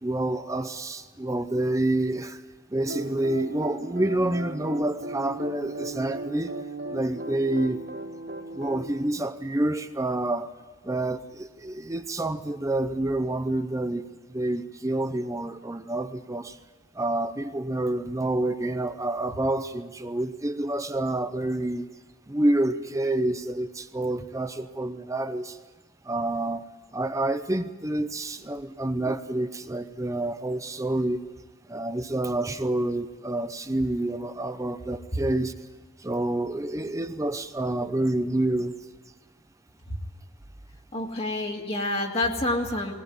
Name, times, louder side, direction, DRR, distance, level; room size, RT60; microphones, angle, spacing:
voice 1, 0.0-2.4 2.7-6.5 6.9-7.8 8.6-10.5 10.8-14.1 14.3-16.5 17.0-21.9 22.3-25.6 26.1-26.6 26.9-31.2 31.7-35.5 36.0-38.7, right 1 dB, 15° right, 10 dB, 0.6 m, -28 dB
sound 1, 2.8-8.9, right 2 dB, 60° right, 3.3 m, -37 dB
voice 2, 40.9-42.9, left 2 dB, 30° left, 1 dB, 2.0 m, -28 dB
20.0 x 18.5 x 9.4 m, 1.3 s
head